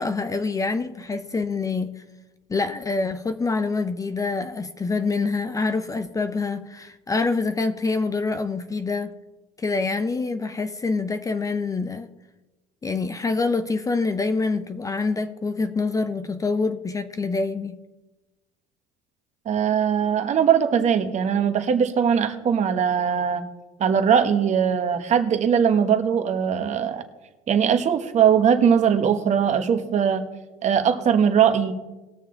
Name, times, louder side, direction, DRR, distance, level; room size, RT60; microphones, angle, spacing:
voice 1, 0.0-2.0 2.5-9.1 9.6-12.1 12.8-17.8, left 3 dB, 20° left, 0.6 m, -26 dB
voice 2, 19.4-23.4 23.8-27.0 27.5-30.2 30.6-31.7, right 7 dB, 40° right, 1.3 m, -20 dB
20.0 x 6.6 x 3.8 m
supercardioid pair, 95°, 17 cm